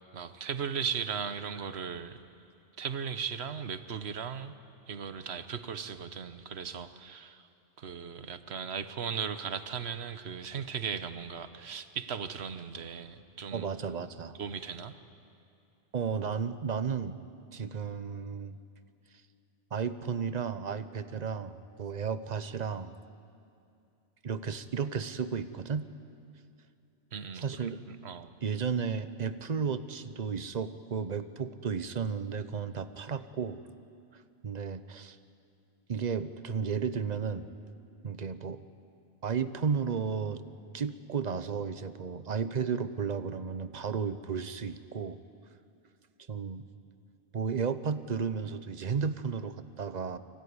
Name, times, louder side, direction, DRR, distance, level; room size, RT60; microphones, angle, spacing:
voice 1, 0.1-2.2 2.8-4.5 4.9-7.5 7.8-13.7 14.4-14.9 27.1-28.3, right 7 dB, 65° right, 11 dB, 1.2 m, -37 dB
voice 2, 13.5-14.4 15.9-17.2 17.5-18.6 19.7-22.9 24.2-25.9 27.3-27.8 28.4-33.6 34.1-35.2 35.9-37.5 38.0-38.6 39.2-40.4 40.7-45.2 46.3-46.6 47.3-50.2, right 6 dB, 40° right, 12 dB, 0.9 m, -33 dB
24.5 x 16.5 x 9.6 m, 2.6 s
omnidirectional pair, 1.2 m